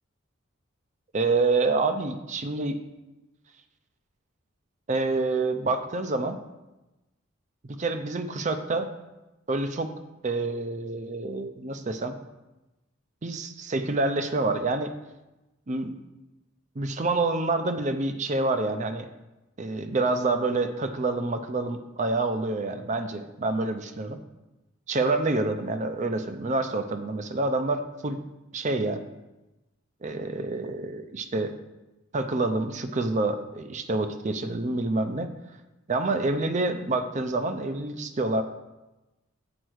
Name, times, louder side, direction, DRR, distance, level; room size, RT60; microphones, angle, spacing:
voice 1, 1.1-2.8 4.9-6.4 7.6-8.9 9.5-9.9 10.2-12.2 13.2-14.9 15.7-15.9 16.8-19.1 19.6-24.2 24.9-28.2 28.5-29.0 30.0-31.5 32.1-35.3 35.9-38.4, right 3 dB, 35° right, 8 dB, 0.5 m, -27 dB
7.9 x 4.5 x 6.3 m, 1.0 s
head